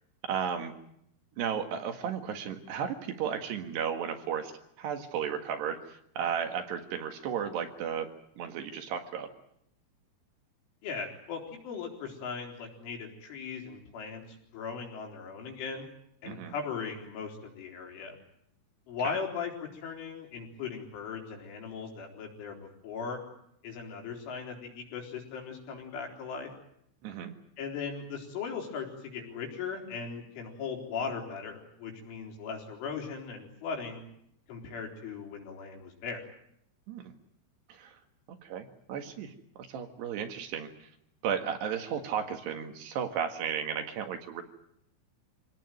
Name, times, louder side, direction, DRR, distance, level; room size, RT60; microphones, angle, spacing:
voice 1, 0.2-0.7 1.4-4.5 4.8-5.8 6.2-8.1 8.4-9.3 16.3-16.5 19.0-19.1 27.0-27.3 36.9-37.0 37.7-37.9 38.4-40.7 41.2-44.4, right 7 dB, 65° right, 5 dB, 3.7 m, -34 dB
voice 2, 10.8-15.9 16.2-18.2 18.9-23.2 23.6-26.5 27.6-34.0 34.5-36.3, left 5 dB, 85° left, 1 dB, 6.7 m, -38 dB
26.5 x 18.0 x 9.3 m, 0.75 s
omnidirectional pair, 5.4 m